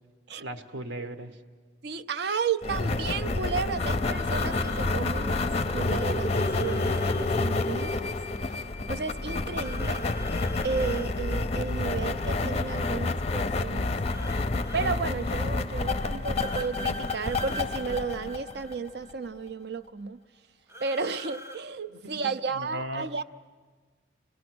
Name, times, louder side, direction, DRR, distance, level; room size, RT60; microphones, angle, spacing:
voice 1, 0.4-1.4 21.9-23.1, right 1 dB, 80° right, 7 dB, 1.3 m, -38 dB
voice 2, 1.8-8.1 8.9-10.0 10.6-13.9 14.7-20.2 20.8-23.2, right 5 dB, 60° right, 13 dB, 0.6 m, -33 dB
sound 1, 2.6-19.1, left 3 dB, 35° left, 0.5 m, -29 dB
sound 2, 4.2-4.9 6.3-7.3 9.5-11.1 14.1-15.0 16.4-16.7 17.0-17.6 20.7-21.6, left 1 dB, 15° right, 0.6 m, -44 dB
26.0 x 18.5 x 6.2 m, 1.4 s
head